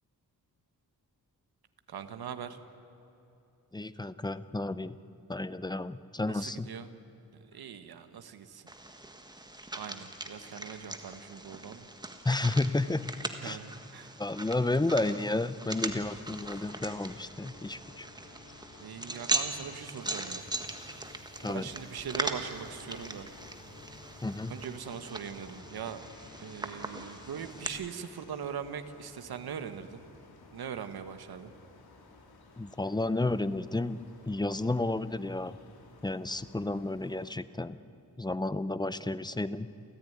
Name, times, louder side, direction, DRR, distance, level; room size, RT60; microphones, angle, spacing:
voice 1, 1.9-2.6 6.3-6.9 7.3-8.7 9.7-11.9 13.4-14.1 18.8-20.5 21.4-23.3 24.5-26.0 26.4-30.0 30.5-31.5, right 7 dB, 80° right, 9 dB, 1.5 m, -41 dB
voice 2, 3.7-5.0 5.3-6.7 12.2-13.1 13.4-13.6 14.2-18.1 21.4-21.7 24.2-24.5 32.6-35.6 36.0-37.8 38.2-39.7, left 2 dB, 10° left, 14 dB, 0.6 m, -31 dB
sound 1, 8.7-27.7, right 2 dB, 10° right, 1.5 m, -40 dB
sound 2, 15.9-27.9, left 3 dB, 60° left, 3.1 m, -53 dB
sound 3, 21.7-37.3, left 3 dB, 85° left, 3.2 m, -57 dB
29.0 x 14.5 x 9.6 m, 3.0 s
wide cardioid pair, 135°, 37 cm